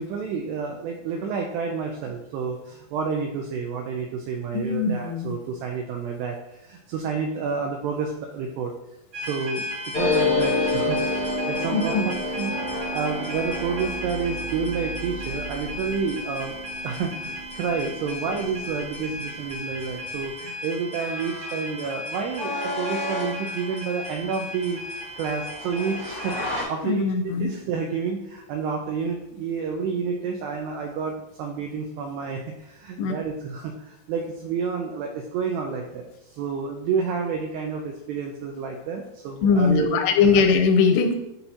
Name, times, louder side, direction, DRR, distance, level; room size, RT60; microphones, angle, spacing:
voice 1, 0.0-8.7 9.2-16.6 16.8-24.8 25.2-36.1 36.4-40.4, right 5 dB, 80° right, 2 dB, 2.5 m, -29 dB
voice 2, 4.5-5.3 11.7-12.1 26.8-27.6 33.0-33.1 39.4-41.1, left 5 dB, 80° left, 5 dB, 2.5 m, -21 dB
sound 1, 9.1-26.6, left 1 dB, 20° right, 2.3 m, -34 dB
sound 2, 9.9-19.1 19.4-19.5 19.7-20.3, left 2 dB, 65° left, 1.4 m, -29 dB
8.6 x 5.7 x 2.7 m, 0.89 s
omnidirectional pair, 5.2 m